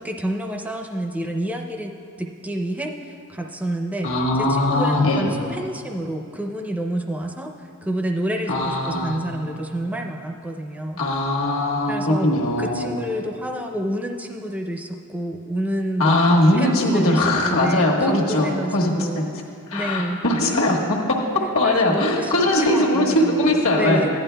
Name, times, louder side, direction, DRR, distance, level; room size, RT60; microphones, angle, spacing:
voice 1, 0.0-1.9 2.2-4.1 4.4-11.0 11.9-12.3 12.6-16.2 16.5-19.3 19.7-20.2 21.6-23.5 23.7-24.1, right 1 dB, 5° right, 2 dB, 0.5 m, -28 dB
voice 2, 4.0-5.3 8.5-9.2 11.0-12.9 16.0-19.3 19.7-21.2 21.5-24.0, left 1 dB, 65° left, -2 dB, 1.3 m, -20 dB
15.0 x 10.5 x 2.2 m, 2.5 s
head